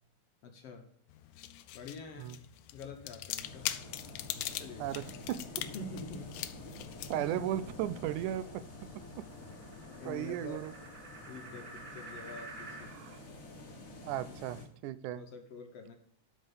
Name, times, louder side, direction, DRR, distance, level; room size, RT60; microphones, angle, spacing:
voice 1, 0.4-0.9 1.7-2.4 2.7-3.7 4.5-4.9 5.7-6.3 7.1-7.5 8.0-8.2 9.5-10.7 11.3-12.9 14.3-14.4 15.2-16.0, left 4 dB, 65° left, 4 dB, 1.7 m, -46 dB
sound 1, 1.1-9.6, left 13 dB, 90° left, 2.1 m, -43 dB
sound 2, 3.4-14.7, left 1 dB, 40° left, 1.3 m, -49 dB
voice 2, 4.8-5.4 7.1-8.4 10.1-10.7 12.9-13.2 14.0-15.3, right 12 dB, 90° right, 14 dB, 2.1 m, -36 dB
sound 3, 6.2-12.9, right 3 dB, 45° right, 2.1 m, -52 dB
12.0 x 4.6 x 5.1 m, 0.70 s
omnidirectional pair, 3.5 m